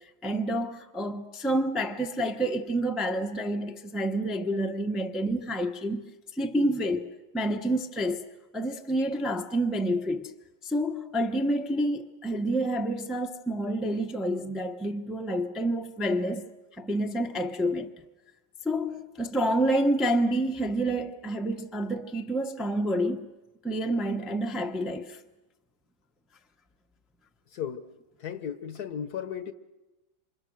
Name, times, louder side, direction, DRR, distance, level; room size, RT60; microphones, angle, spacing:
voice 1, 0.2-6.0 6.3-8.2 8.5-10.3 10.6-16.5 16.8-17.9 18.6-23.3 23.6-25.2, right 1 dB, ahead, 0.7 m, -28 dB
voice 2, 27.5-27.8 28.2-29.5, left 8 dB, 60° left, 1.5 m, -35 dB
28.0 x 26.0 x 6.5 m
omnidirectional pair, 2.1 m